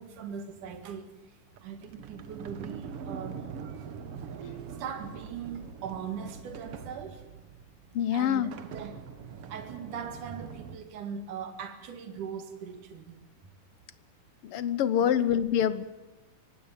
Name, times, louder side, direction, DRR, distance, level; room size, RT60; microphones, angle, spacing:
voice 1, 0.0-3.5 4.8-7.3 8.1-9.0 9.5-13.2 15.0-15.2, right 7 dB, 75° right, 8 dB, 3.5 m, -40 dB
Sliding door, 1.5-10.8, right 7 dB, 55° right, 2.0 m, -43 dB
voice 2, 7.9-8.5 14.4-15.9, left 9 dB, 75° left, 15 dB, 1.3 m, -26 dB
25.5 x 17.5 x 7.4 m, 1.1 s
omnidirectional pair, 3.6 m